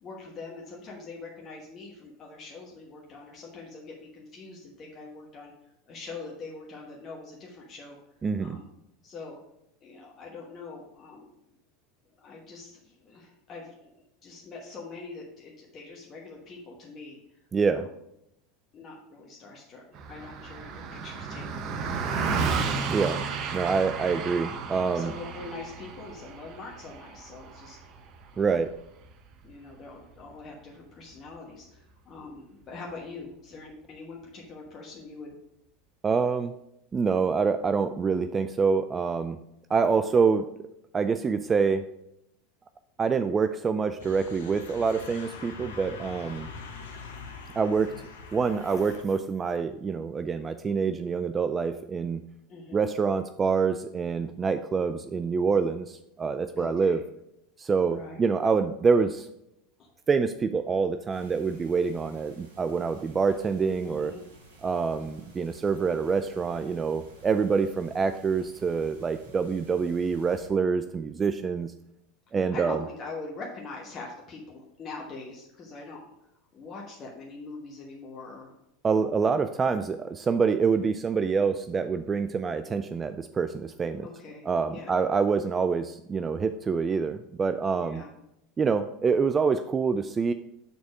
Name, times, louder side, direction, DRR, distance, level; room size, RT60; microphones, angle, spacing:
voice 1, 0.0-5.5 5.9-8.0 8.4-8.7 9.0-9.4 9.8-11.3 12.2-13.9 14.2-17.4 17.8-17.9 18.7-19.8 20.1-22.5 24.9-27.8 28.3-28.6 29.4-35.4 39.9-40.0 52.5-52.8 56.5-57.0 57.9-58.2 59.8-59.9 63.8-64.2 72.5-76.0 76.5-78.5 78.9-79.2 84.0-85.0 85.3-85.4 87.8-88.1, left 3 dB, 35° left, -2 dB, 1.2 m, -43 dB
voice 2, 8.2-8.6 17.5-17.9 22.9-23.2 23.5-25.1 28.4-28.7 36.0-36.6 36.9-39.4 39.7-40.7 40.9-41.8 43.0-46.5 47.5-47.9 48.3-52.2 52.7-57.0 57.6-59.3 60.1-64.1 64.6-71.7 72.3-72.8 78.8-84.1 84.5-88.0 88.6-90.3, right 5 dB, 25° right, 10 dB, 0.3 m, -26 dB
Car passing by, 19.9-29.6, right 5 dB, 50° right, 0.8 m, -33 dB
sound 1, 44.0-49.0, left 4 dB, 75° left, 0.8 m, -43 dB
sound 2, 61.1-70.5, right 2 dB, 80° right, 1.3 m, -53 dB
6.8 x 4.2 x 4.7 m, 0.81 s
hypercardioid pair, 80°, 0 cm